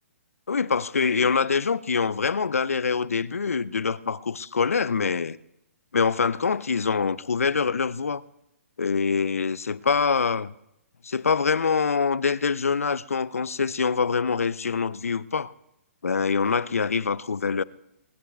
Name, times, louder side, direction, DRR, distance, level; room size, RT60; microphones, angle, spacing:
voice 1, 0.5-5.4 5.9-8.2 8.8-10.5 11.0-15.5 16.0-17.6, left 5 dB, 80° left, 0.5 m, -24 dB
22.5 x 19.0 x 2.4 m
figure-of-eight pair, 130°, 8 cm